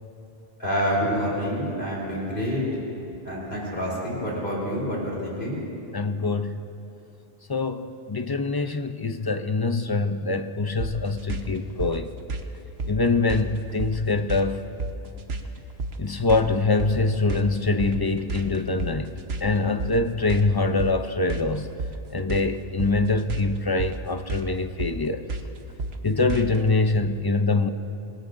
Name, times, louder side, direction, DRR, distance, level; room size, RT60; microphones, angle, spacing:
voice 1, 0.6-2.6 3.2-5.6, equal, 55° left, -5 dB, 3.9 m, -27 dB
voice 2, 5.9-6.5 7.5-12.1 12.9-14.7 16.0-19.1 19.4-21.7 22.1-25.2 26.0-27.7, left 3 dB, 30° left, 8 dB, 0.5 m, -24 dB
sound 1, 10.8-26.7, right 3 dB, 90° right, 1.2 m, -33 dB
27.0 x 19.0 x 2.6 m, 2.8 s
omnidirectional pair, 1.0 m